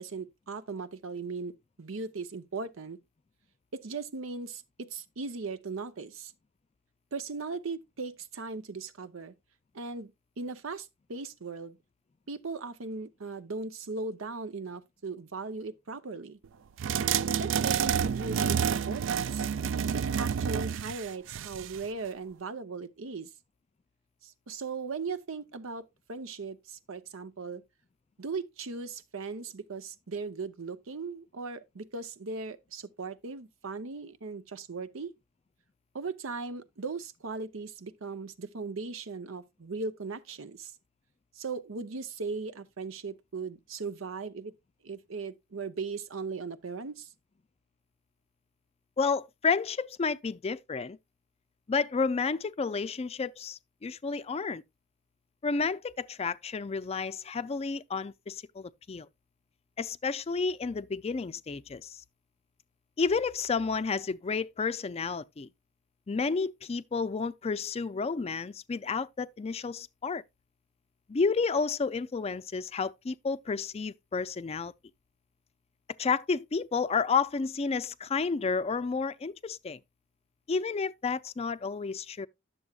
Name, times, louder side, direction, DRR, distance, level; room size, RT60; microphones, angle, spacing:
voice 1, 0.0-1.5 1.8-3.0 3.7-6.3 7.1-9.3 9.7-10.1 10.4-11.8 12.3-16.4 17.1-19.4 19.9-23.3 24.2-27.6 28.2-35.1 35.9-40.7 41.3-44.5 44.8-47.1, right 4 dB, 90° right, 0.8 m, -38 dB
sound 1, 16.8-21.8, right 7 dB, 65° right, 0.4 m, -29 dB
voice 2, 49.0-51.0 51.7-54.6 55.4-59.1 59.8-62.0 63.0-65.5 66.1-70.2 71.1-74.7 76.0-79.8 80.5-82.3, left 5 dB, 30° left, 0.4 m, -31 dB
11.0 x 7.0 x 2.3 m
head